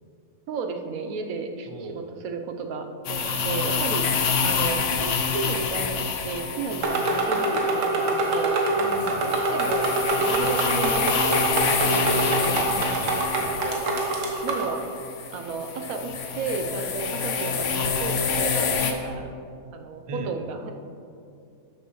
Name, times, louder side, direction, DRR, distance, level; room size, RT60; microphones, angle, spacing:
voice 1, 0.5-4.1 4.4-8.6 9.2-12.7 13.6-13.9 14.4-14.8 15.3-19.3 19.7-20.7, right 4 dB, 80° right, 5 dB, 1.2 m, -33 dB
voice 2, 1.7-2.0 3.2-3.9 8.7-9.4 12.0-13.8 20.1-20.3, right 2 dB, 45° right, 5 dB, 0.4 m, -37 dB
sound 1, 3.0-18.9, left 6 dB, 65° left, 1.0 m, -28 dB
sound 2, 6.8-14.7, right 2 dB, 65° right, 1.4 m, -25 dB
12.5 x 6.8 x 3.0 m, 2.5 s
omnidirectional pair, 1.5 m